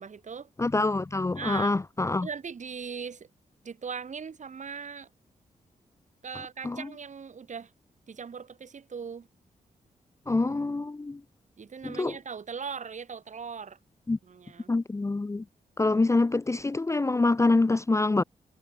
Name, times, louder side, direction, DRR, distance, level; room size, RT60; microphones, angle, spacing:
voice 1, 0.0-0.5 1.4-1.8 2.2-3.3 3.6-5.1 6.2-7.7 8.1-9.3 11.6-13.8 14.2-14.7, right 6 dB, 55° right, 2.9 m, -39 dB
voice 2, 0.6-2.3 6.6-6.9 10.3-11.2 11.8-12.2 14.1-14.2 14.7-15.4 15.8-18.2, left 3 dB, 20° left, 0.5 m, -25 dB
cardioid pair, 70°, 15 cm